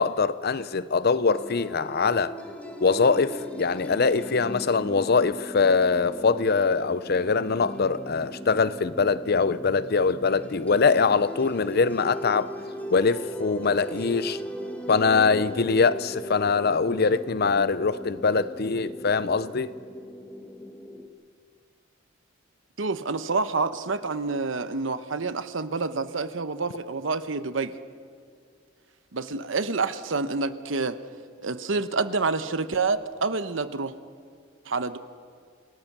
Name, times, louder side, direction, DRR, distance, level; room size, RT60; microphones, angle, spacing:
voice 1, 0.0-2.3 2.8-12.5 12.9-14.4 14.9-19.7, left 4 dB, 55° left, 0.7 m, -23 dB
sound 1, 1.3-21.1, equal, 10° left, 1.8 m, -39 dB
voice 2, 22.8-27.7 29.1-31.0 31.4-33.9 34.7-35.0, right 4 dB, 75° right, 1.0 m, -28 dB
27.5 x 19.0 x 6.1 m
head